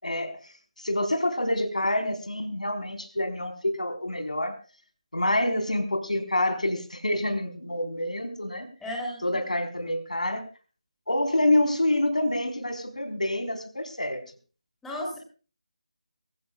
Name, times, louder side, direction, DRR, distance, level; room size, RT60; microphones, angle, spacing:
voice 1, 0.0-4.5 5.1-8.7 9.2-10.4 11.1-14.2, left 1 dB, 75° left, 5 dB, 4.3 m, -27 dB
voice 2, 8.8-9.2 14.8-15.2, left 1 dB, 5° left, -2 dB, 3.2 m, -33 dB
24.0 x 15.5 x 2.4 m, 0.36 s
figure-of-eight pair, 160°, 4 cm